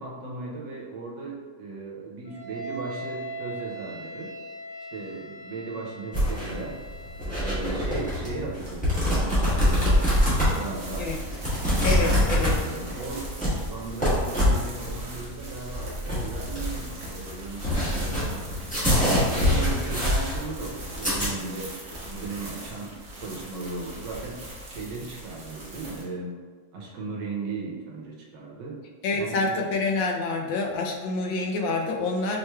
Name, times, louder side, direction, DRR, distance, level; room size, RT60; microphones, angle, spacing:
voice 1, 0.0-4.3 4.9-6.7 7.4-10.0 10.3-11.1 12.0-18.5 19.2-21.8 22.0-26.4 26.7-28.8 29.1-29.7, right 3 dB, 75° right, -3 dB, 1.3 m, -36 dB
Wind instrument woodwind instrument, 2.2-8.4, right 1 dB, 50° left, 1.4 m, -40 dB
sound 1, 6.1-21.3, left 1 dB, 5° left, 0.7 m, -25 dB
sound 2, 9.5-26.0, right 1 dB, 50° right, 0.9 m, -41 dB
voice 2, 11.8-12.5 29.0-32.4, left 3 dB, 85° left, 1 dB, 1.3 m, -27 dB
4.5 x 3.1 x 2.2 m, 1.4 s
omnidirectional pair, 2.0 m